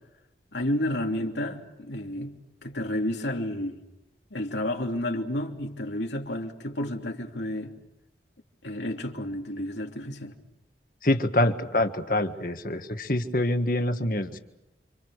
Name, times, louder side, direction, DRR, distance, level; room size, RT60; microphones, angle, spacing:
voice 1, 0.5-3.8 4.3-7.8 8.6-10.3, left 1 dB, 90° left, 3.1 m, -31 dB
voice 2, 11.0-14.4, left 1 dB, 50° left, 1.7 m, -25 dB
29.5 x 27.0 x 6.5 m
head